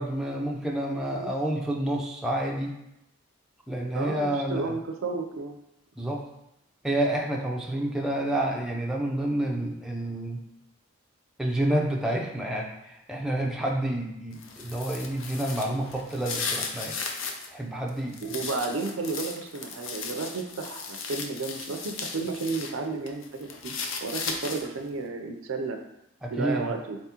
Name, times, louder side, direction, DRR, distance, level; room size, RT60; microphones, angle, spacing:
voice 1, 0.0-2.8 3.7-4.7 6.0-6.2 6.8-10.4 11.4-17.0 17.5-18.2 26.2-26.7, right 1 dB, 5° right, -2 dB, 0.5 m, -29 dB
voice 2, 3.9-5.6 18.2-23.7 24.0-25.8 26.3-27.0, right 3 dB, 80° right, 4 dB, 0.5 m, -32 dB
sound 1, 14.3-17.5 17.9-22.7 23.1-24.8, left 5 dB, 65° left, 0.5 m, -36 dB
4.2 x 3.5 x 2.9 m, 0.83 s
head